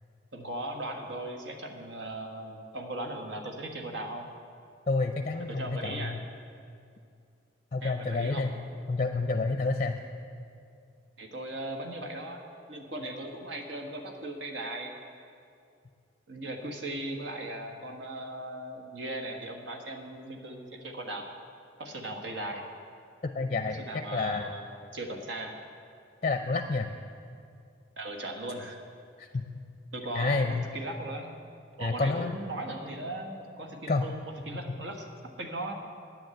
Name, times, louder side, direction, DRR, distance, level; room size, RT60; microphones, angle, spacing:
voice 1, 0.3-4.3 5.5-6.2 7.8-8.5 11.2-12.4 12.7-14.9 16.3-21.3 21.8-22.7 23.7-25.5 28.0-28.8 29.9-31.3 31.8-35.1 35.4-35.7, right 1 dB, 75° right, 3 dB, 1.4 m, -38 dB
voice 2, 4.9-6.2 7.7-8.5 8.9-9.9 23.2-24.5 26.2-26.9 29.2-29.4 30.1-30.7 31.8-32.4 33.9-34.1, left 3 dB, 35° left, 6 dB, 0.5 m, -29 dB
10.5 x 9.0 x 7.8 m, 2.4 s
head